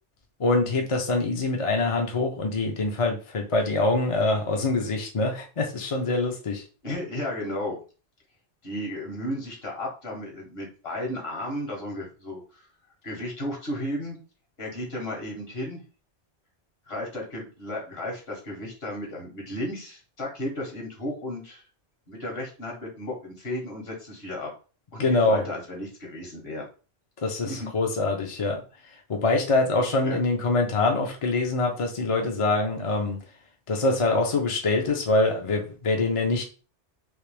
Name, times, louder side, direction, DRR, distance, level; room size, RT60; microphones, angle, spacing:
voice 1, 0.4-6.6 25.0-25.4 27.2-28.6 28.9-33.2 33.7-36.4, left 2 dB, 40° left, 2 dB, 0.5 m, -24 dB
voice 2, 6.8-7.8 8.6-12.7 13.0-14.2 14.6-15.8 16.9-21.6 22.1-24.5 24.9-26.6 27.4-27.7 30.0-30.2, left 1 dB, 60° left, -1 dB, 1.6 m, -34 dB
3.2 x 2.9 x 3.3 m, 0.35 s
omnidirectional pair, 1.2 m